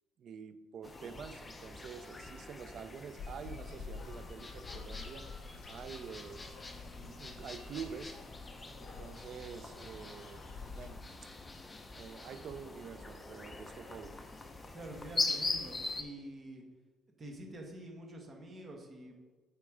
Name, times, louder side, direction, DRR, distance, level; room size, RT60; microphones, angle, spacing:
voice 1, 0.2-5.3 5.7-6.5 7.0-8.2 8.8-10.5 10.8-11.0 11.9-14.2, right 6 dB, 50° right, 12 dB, 0.5 m, -47 dB
sound 1, 0.8-16.0, left 3 dB, 20° left, 0.7 m, -42 dB
sound 2, 3.2-10.9, left 4 dB, 50° left, 1.4 m, -49 dB
voice 2, 14.7-16.6 17.2-19.1, right 1 dB, 30° right, 2 dB, 1.4 m, -47 dB
8.6 x 4.5 x 4.9 m, 1.4 s
cardioid pair, 125°, 0 cm